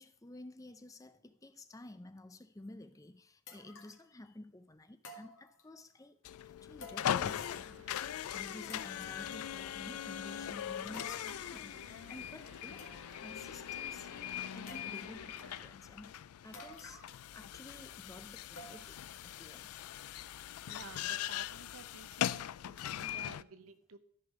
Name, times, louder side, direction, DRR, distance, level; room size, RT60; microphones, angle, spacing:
voice 1, 0.0-6.2 6.4-12.9 13.2-19.7, left 2 dB, 15° left, 0.4 m, -52 dB
sound 1, 2.6-2.7 3.5-4.1 5.0-5.9 6.8-7.7 8.0-8.1 8.7-9.5 10.9-11.6 12.4-12.5 12.8-13.3 13.7-13.8 14.7-15.2 16.5-17.3 17.6-17.7 18.6-19.1 19.5-19.6 20.2-20.3, left 1 dB, 65° left, 2.0 m, -53 dB
sound 2, 6.2-23.4, left 10 dB, 90° left, 0.3 m, -40 dB
sound 3, 7.1-15.7, right 3 dB, 60° right, 1.3 m, -59 dB
voice 2, 20.7-24.0, right 3 dB, 75° right, 0.8 m, -53 dB
13.0 x 5.5 x 4.8 m
head